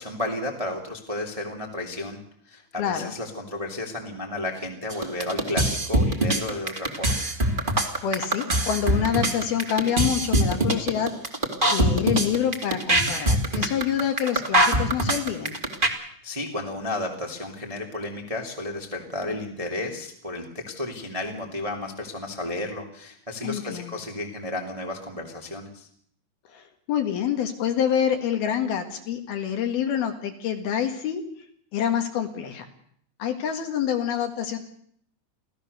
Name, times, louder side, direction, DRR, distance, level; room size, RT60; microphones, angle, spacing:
voice 1, 0.0-2.2 2.4-7.2 15.9-25.9, left 2 dB, 10° right, 2 dB, 1.6 m, -33 dB
voice 2, 2.8-3.1 8.0-11.1 11.7-15.6 23.4-24.0 26.5-31.2 31.7-32.7 33.2-34.6, left 9 dB, 60° left, 6 dB, 3.3 m, -27 dB
sound 1, 4.9-15.9, right 1 dB, 35° right, 0.7 m, -22 dB
26.0 x 16.5 x 6.8 m, 0.64 s
omnidirectional pair, 5.3 m